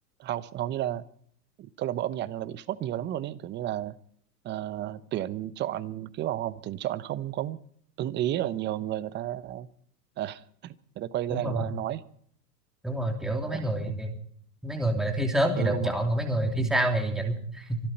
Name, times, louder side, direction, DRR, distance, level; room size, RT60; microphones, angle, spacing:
voice 1, 0.2-1.0 1.6-4.0 4.4-7.6 8.0-9.7 10.2-12.0 13.5-14.0 15.6-16.0, right 12 dB, 25° right, 17 dB, 0.8 m, -32 dB
voice 2, 11.3-11.7 12.8-14.1 14.6-17.8, right 1 dB, ahead, 3 dB, 2.9 m, -27 dB
25.0 x 12.5 x 4.3 m, 0.63 s
hypercardioid pair, 120°, 47 cm